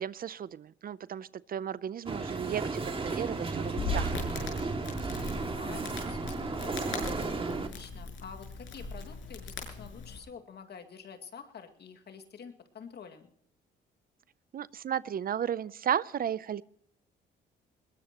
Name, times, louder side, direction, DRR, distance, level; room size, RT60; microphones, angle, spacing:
voice 1, 0.0-4.5 14.5-16.6, right 9 dB, 50° right, 19 dB, 0.5 m, -34 dB
sound 1, 2.1-7.7, right 3 dB, 25° right, 2.2 m, -34 dB
Crackle, 3.5-10.2, left 3 dB, 75° left, 6.3 m, -39 dB
voice 2, 5.3-7.0 7.7-13.3, left 6 dB, 55° left, 6 dB, 2.1 m, -48 dB
21.0 x 19.5 x 3.0 m, 0.66 s
cardioid pair, 90°, 20 cm